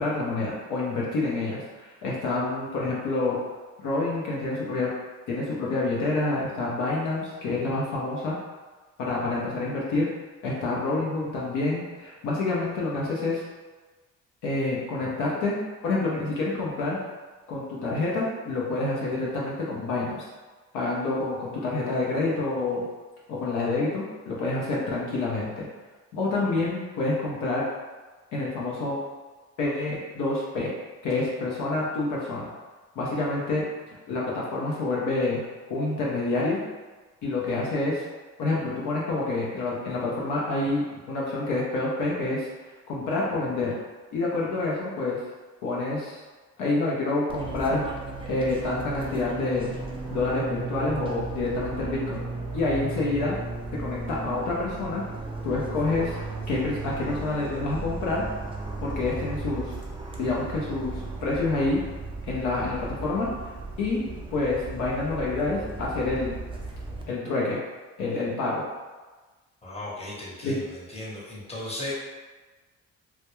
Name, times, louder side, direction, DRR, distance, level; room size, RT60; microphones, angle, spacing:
voice 1, 0.0-3.4 3.8-4.9 5.3-8.4 9.0-10.1 10.4-13.4 14.4-17.0 17.5-20.3 20.7-22.8 23.3-25.7 26.1-27.6 28.3-29.0 29.6-30.7 31.0-32.5 33.0-33.6 34.1-35.4 35.7-36.6 37.2-38.0 38.4-42.5 42.9-43.7 44.1-45.2 45.6-46.2 46.6-47.8 48.3-49.7 50.1-52.2 52.5-53.4 53.7-55.0 55.4-56.2 56.5-58.2 58.8-59.7 60.2-61.8 62.3-63.3 63.8-64.0 64.3-66.4 67.1-67.6 68.0-68.6 70.4-70.6, left 2 dB, 80° left, -5 dB, 0.6 m, -27 dB
Fixed-wing aircraft airplane, 47.3-67.0, right 3 dB, 20° right, 0.4 m, -35 dB
voice 2, 69.6-71.9, left 1 dB, 20° left, -5 dB, 0.8 m, -36 dB
2.2 x 2.1 x 2.9 m, 1.3 s
cardioid pair, 90°, 30 cm